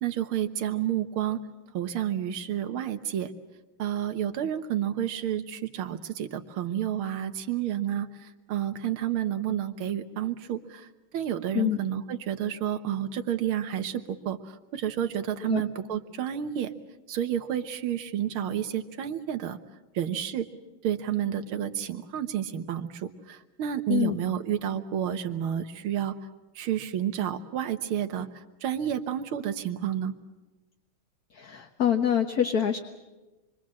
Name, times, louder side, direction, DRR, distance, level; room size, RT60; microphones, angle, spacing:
voice 1, 0.0-1.4 1.7-3.3 3.8-8.1 8.5-10.9 11.1-16.7 17.1-19.6 20.0-20.5 20.8-26.1 26.6-28.3 28.6-30.1, right 10 dB, 80° right, 7 dB, 2.0 m, -30 dB
voice 2, 31.3-32.8, left 9 dB, 50° left, 4 dB, 1.6 m, -25 dB
27.0 x 23.0 x 7.5 m, 1.1 s
omnidirectional pair, 2.3 m